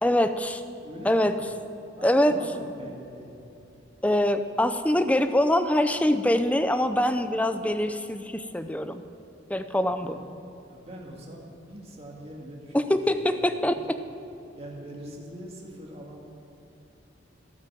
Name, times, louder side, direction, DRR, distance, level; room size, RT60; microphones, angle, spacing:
voice 1, 0.0-0.6 1.0-1.3 2.0-2.3 4.0-9.0 9.5-10.2 12.7-13.8, left 1 dB, 5° left, 9 dB, 0.5 m, -24 dB
voice 2, 0.8-1.4 1.9-3.4 10.0-10.3 10.7-13.8 14.5-16.4, equal, 30° right, -1 dB, 2.1 m, -43 dB
12.5 x 9.4 x 7.5 m, 2.8 s
head